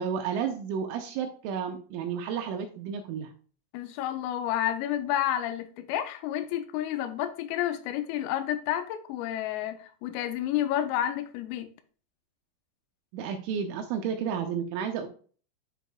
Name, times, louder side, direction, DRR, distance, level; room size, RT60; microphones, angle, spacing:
voice 1, 0.0-3.3 13.1-15.1, right 7 dB, 80° right, 2.8 m, -32 dB
voice 2, 3.7-11.7, left 11 dB, 85° left, 3.1 m, -30 dB
11.0 x 4.0 x 2.3 m
omnidirectional pair, 6.0 m